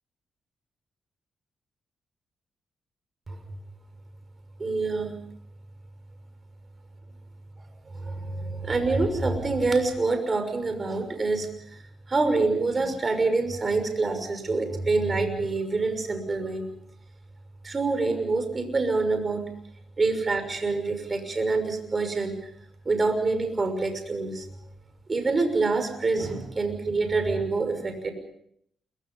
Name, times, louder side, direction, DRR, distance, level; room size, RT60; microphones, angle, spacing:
voice 1, 4.6-5.2 7.9-11.5 12.1-16.6 17.6-19.4 20.0-22.3 22.8-24.5 25.1-28.1, right 3 dB, 35° right, 7 dB, 6.2 m, -26 dB
28.0 x 24.0 x 5.6 m, 0.69 s
cardioid pair, 90°, 0 cm